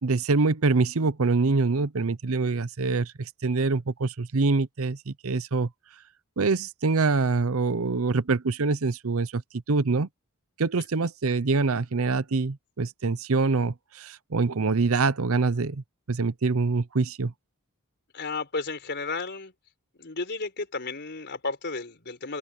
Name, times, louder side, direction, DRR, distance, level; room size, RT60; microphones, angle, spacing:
voice 1, 0.0-5.7 6.4-9.4 9.7-10.1 10.6-17.3, right 3 dB, 65° right, 0.7 m, -25 dB
voice 2, 18.1-19.5 20.0-22.4, left 3 dB, 50° left, 4.4 m, -33 dB
open air
head